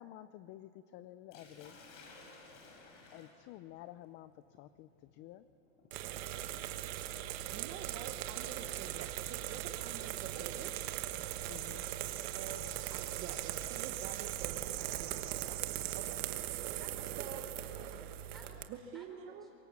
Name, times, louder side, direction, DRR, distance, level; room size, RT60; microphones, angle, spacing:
voice 1, 0.0-1.8 3.1-5.5 11.5-11.8, left 14 dB, 30° left, 14 dB, 0.4 m, -51 dB
Sink (filling or washing), 1.3-11.2 12.4-12.7 13.2-13.3 14.7-16.3, left 3 dB, 75° left, 6.6 m, -60 dB
sound 1, 5.9-18.6, right 13 dB, 55° right, 1.4 m, -39 dB
voice 2, 7.5-10.8 12.3-16.2 17.2-17.5 18.7-19.5, right 8 dB, 35° right, 5 dB, 1.1 m, -48 dB
voice 3, 16.8-18.6 18.9-19.4, right 1 dB, ahead, 0 dB, 4.5 m, -55 dB
25.0 x 23.0 x 7.2 m, 2.9 s
supercardioid pair, 145°, 37 cm